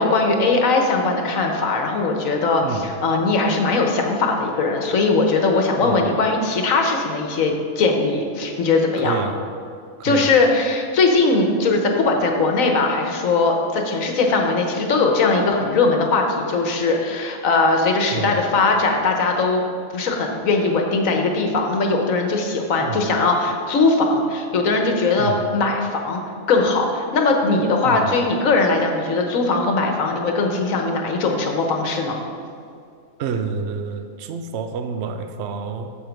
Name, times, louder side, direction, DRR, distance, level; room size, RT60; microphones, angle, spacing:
voice 1, 0.0-9.2 10.0-19.6 19.9-26.2 26.5-32.2, left 3 dB, 75° left, 3 dB, 1.4 m, -20 dB
voice 2, 5.8-6.2 9.0-9.3 10.0-10.3 18.1-18.4 22.8-23.0 25.2-25.4 27.8-28.1 33.2-35.9, right 6 dB, 60° right, 7 dB, 0.8 m, -28 dB
7.5 x 7.4 x 5.2 m, 2.4 s
omnidirectional pair, 1.4 m